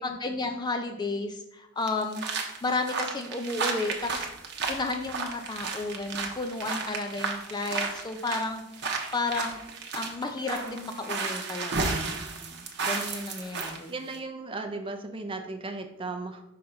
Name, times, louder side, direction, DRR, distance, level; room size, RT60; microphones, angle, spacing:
voice 1, 0.0-2.2 2.6-4.3 4.7-8.9 9.1-9.6 9.9-13.9, left 3 dB, 20° left, 6 dB, 0.4 m, -32 dB
sound 1, 1.9-13.8 14.1-14.2, right 4 dB, 50° right, 0.9 m, -33 dB
voice 2, 13.9-16.4, right 3 dB, 25° right, 5 dB, 0.6 m, -36 dB
5.7 x 3.8 x 5.4 m, 0.88 s
head